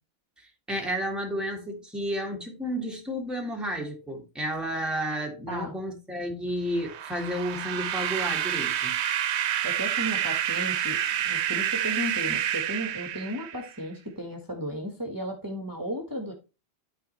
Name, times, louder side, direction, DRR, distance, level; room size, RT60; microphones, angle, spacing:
voice 1, 0.4-9.0, equal, ahead, 1.9 m, -32 dB
sound 1, 6.8-13.8, right 10 dB, 90° right, 0.9 m, -28 dB
voice 2, 9.6-11.0 11.2-16.3, equal, 20° right, 1.7 m, -34 dB
13.0 x 4.4 x 3.2 m
omnidirectional pair, 1.1 m